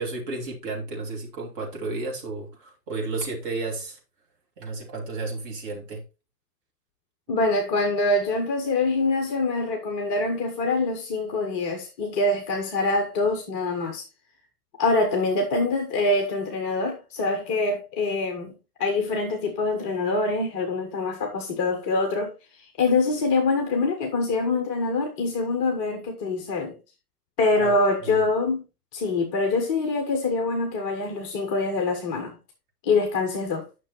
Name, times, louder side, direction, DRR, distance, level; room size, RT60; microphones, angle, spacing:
voice 1, 0.0-4.0 4.6-6.0 27.5-27.8 28.0-28.2, right 3 dB, 30° right, 2.6 m, -32 dB
voice 2, 7.3-14.1 14.8-26.8 27.4-28.6 28.9-32.4 32.8-33.6, left 3 dB, 20° left, 0.8 m, -25 dB
9.7 x 6.1 x 3.0 m
figure-of-eight pair, 120°, 48 cm